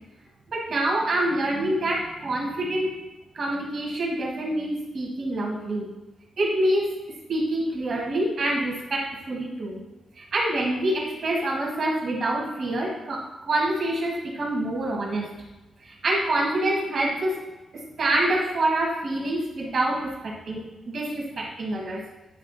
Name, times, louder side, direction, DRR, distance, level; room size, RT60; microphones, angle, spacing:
voice 1, 0.5-2.9 3.3-5.9 6.4-6.9 7.3-9.8 10.1-15.3 15.8-17.4 17.7-22.0, right 1 dB, 50° right, -2 dB, 1.9 m, -26 dB
9.9 x 3.3 x 4.2 m, 1.1 s
wide cardioid pair, 150°, 0 cm